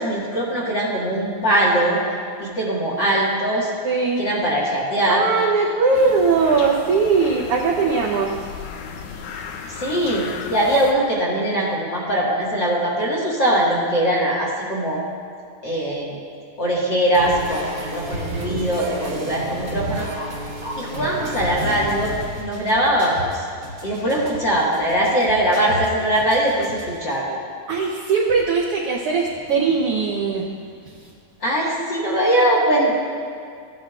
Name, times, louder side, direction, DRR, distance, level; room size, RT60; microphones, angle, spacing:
voice 1, 0.0-2.0 2.4-3.7 4.2-5.3 9.7-15.0 15.6-16.2 16.6-20.1 20.8-22.1 22.4-23.5 23.8-27.4 31.4-32.9, right 1 dB, 45° left, -6 dB, 2.0 m, -21 dB
voice 2, 3.8-4.2 5.1-8.3 27.7-30.5, right 4 dB, 75° right, -2 dB, 1.4 m, -20 dB
sound 1, 5.9-10.9, left 6 dB, 80° left, 2.2 m, -35 dB
sound 2, 17.1-27.2, right 1 dB, 35° right, 1.4 m, -32 dB
16.0 x 9.3 x 2.4 m, 2.2 s
omnidirectional pair, 3.4 m